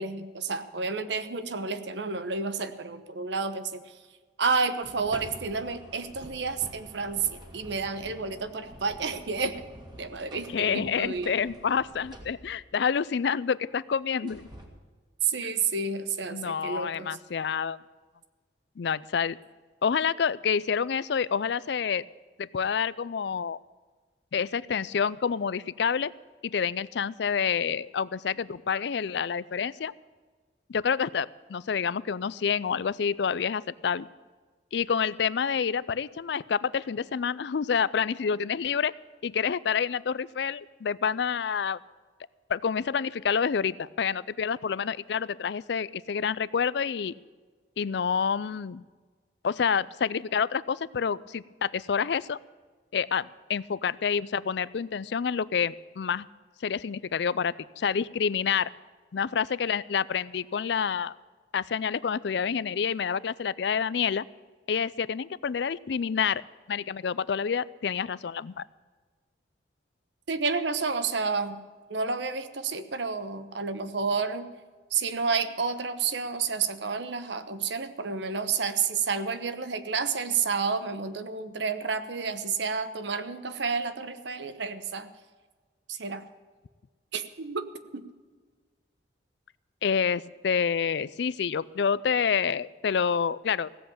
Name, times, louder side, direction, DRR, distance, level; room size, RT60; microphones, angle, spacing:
voice 1, 0.0-4.0 4.4-9.6 10.0-11.3 15.2-17.2 70.3-71.6 71.9-74.5 74.9-85.1 85.9-86.2 87.1-87.7 87.9-88.0, right 5 dB, 70° right, 11 dB, 1.0 m, -30 dB
sound 1, 4.8-12.7 14.3-14.7, equal, 25° right, 2.1 m, -47 dB
voice 2, 10.5-14.5 16.3-17.8 18.8-19.4 19.8-22.0 22.4-23.6 24.3-26.1 26.4-29.9 30.7-34.1 34.7-38.9 39.2-41.8 42.5-47.1 47.8-48.8 49.4-52.4 52.9-56.3 56.6-58.7 59.1-61.1 61.5-64.2 64.7-66.4 66.7-68.6 89.8-93.7, left 6 dB, 65° left, 18 dB, 0.4 m, -28 dB
16.5 x 7.9 x 8.7 m, 1.4 s
head